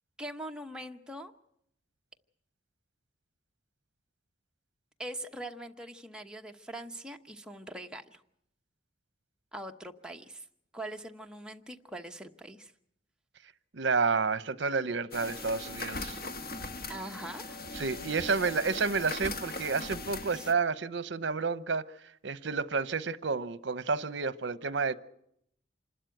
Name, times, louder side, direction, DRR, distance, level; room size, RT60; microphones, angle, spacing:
voice 1, 0.2-1.3 5.0-8.2 9.5-10.5 10.7-12.7 16.9-17.6 20.3-20.5, right 1 dB, 5° right, 1.0 m, -42 dB
voice 2, 13.7-16.2 17.8-21.8 22.2-24.9, right 4 dB, 65° right, 0.8 m, -30 dB
sound 1, 15.1-20.5, left 3 dB, 55° left, 1.4 m, -39 dB
27.0 x 12.5 x 9.2 m
head